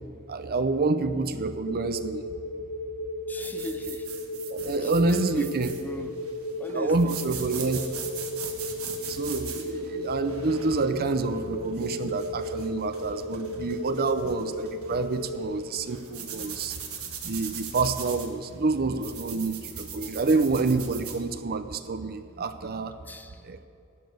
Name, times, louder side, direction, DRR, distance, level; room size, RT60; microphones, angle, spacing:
voice 1, 0.3-2.3 4.5-6.1 6.7-7.8 8.9-16.8 17.2-23.0 23.4-23.6, right 3 dB, 45° right, 10 dB, 0.6 m, -28 dB
sound 1, 1.6-15.4, left 1 dB, 40° left, 1.4 m, -35 dB
voice 2, 3.3-4.1 4.8-6.2 6.6-7.2 23.1-23.4, left 1 dB, 10° left, 8 dB, 0.6 m, -38 dB
sound 2, 3.4-21.2, right 7 dB, 70° right, 1.5 m, -41 dB
11.5 x 8.6 x 7.8 m, 2.7 s
head